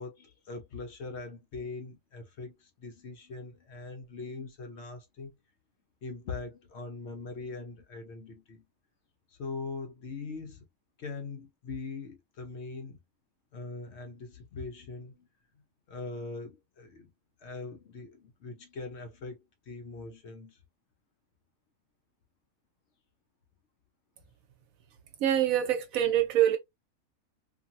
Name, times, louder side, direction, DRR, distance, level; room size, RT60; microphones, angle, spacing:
voice 1, 0.0-5.3 6.0-8.6 9.3-10.7 11.0-13.0 13.5-15.3 15.9-17.1 17.4-20.6, left 3 dB, 60° left, 0.8 m, -41 dB
voice 2, 25.2-26.6, right 11 dB, 75° right, 1.0 m, -25 dB
2.8 x 2.6 x 2.4 m
omnidirectional pair, 1.5 m